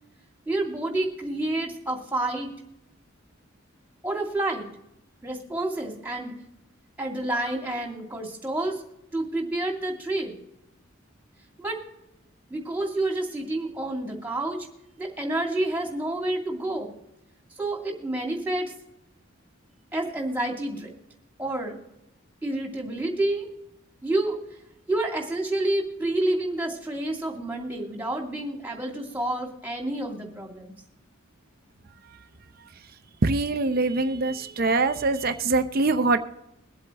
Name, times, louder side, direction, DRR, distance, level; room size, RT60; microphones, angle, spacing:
voice 1, 0.5-2.5 4.0-4.7 5.2-6.3 7.0-8.8 9.1-10.3 11.6-11.8 12.5-14.6 15.0-16.9 17.6-18.7 19.9-20.9 21.4-21.8 22.4-23.5 24.0-24.4 24.9-30.7, right 1 dB, 10° right, 1 dB, 2.4 m, -29 dB
voice 2, 33.2-36.2, right 3 dB, 45° right, 8 dB, 0.6 m, -23 dB
23.0 x 8.1 x 3.0 m, 0.84 s
head